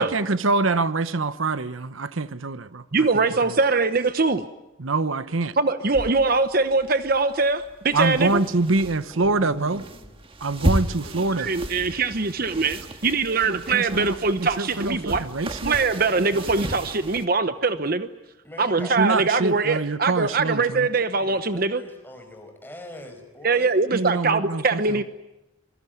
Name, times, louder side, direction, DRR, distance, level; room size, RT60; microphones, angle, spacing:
voice 1, 0.0-2.8 3.4-3.6 4.8-5.5 7.9-9.8 10.4-11.5 13.5-15.9 16.3-16.5 18.8-20.9 23.9-25.0, right 3 dB, 85° right, 13 dB, 1.0 m, -25 dB
voice 2, 2.9-4.5 5.6-8.4 11.3-15.2 15.6-18.1 18.6-21.8 23.4-25.0, right 4 dB, 50° right, 10 dB, 1.0 m, -22 dB
sound 1, 5.9-17.3, right 1 dB, 25° right, 1.8 m, -33 dB
voice 3, 8.1-8.5 9.1-10.2 18.4-19.0 19.3-19.5 20.7-21.4 21.7-23.8, left 1 dB, 10° left, 5 dB, 5.5 m, -42 dB
26.0 x 23.0 x 9.4 m, 0.98 s
head